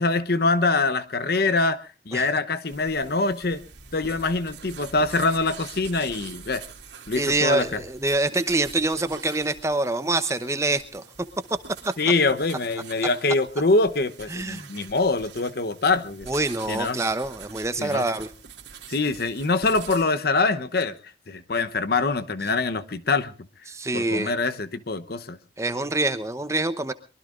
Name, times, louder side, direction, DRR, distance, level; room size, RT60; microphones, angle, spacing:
voice 1, 0.0-3.6 3.9-6.6 7.1-7.8 12.0-16.3 16.7-17.0 17.8-18.1 18.9-21.0 21.3-23.3 23.9-25.4, left 3 dB, 55° left, 11 dB, 1.0 m, -24 dB
sound 1, 2.7-20.1, right 7 dB, 70° right, 2.5 m, -44 dB
voice 2, 7.1-11.0 11.5-11.6 11.8-11.9 14.3-14.7 16.3-18.3 23.7-24.3 25.6-26.9, right 2 dB, 15° right, 12 dB, 0.9 m, -25 dB
24.0 x 22.5 x 2.5 m, 0.35 s
head